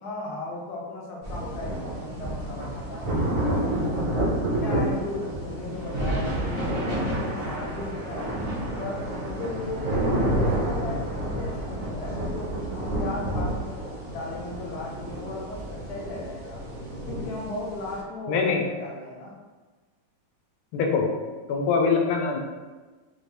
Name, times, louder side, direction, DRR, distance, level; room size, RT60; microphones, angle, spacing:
voice 1, 0.0-3.3 3.6-4.3 4.6-8.5 8.8-10.0 10.4-16.6 17.0-19.4, left 2 dB, 60° left, -4 dB, 1.1 m, -37 dB
sound 1, 1.2-18.0, right 1 dB, 45° right, 0.6 m, -29 dB
voice 2, 18.3-18.7 20.7-21.2 21.5-22.4, left 5 dB, 80° left, 2 dB, 1.5 m, -23 dB
4.4 x 2.5 x 3.2 m, 1.3 s
omnidirectional pair, 2.4 m